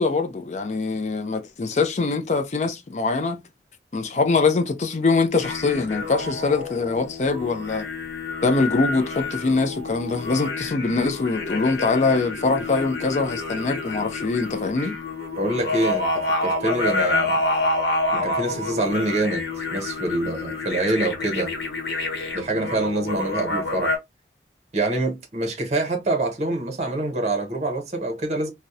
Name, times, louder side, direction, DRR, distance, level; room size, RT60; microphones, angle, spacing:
voice 1, 0.0-3.4 3.9-7.9 8.4-15.0, left 3 dB, 40° left, 0.4 m, -23 dB
sound 1, 5.4-24.0, left 2 dB, 80° left, 0.9 m, -28 dB
voice 2, 15.4-17.4 18.1-19.4 19.7-21.5 22.3-24.0 24.7-28.5, right 2 dB, 40° right, 0.6 m, -25 dB
2.7 x 2.0 x 2.3 m
head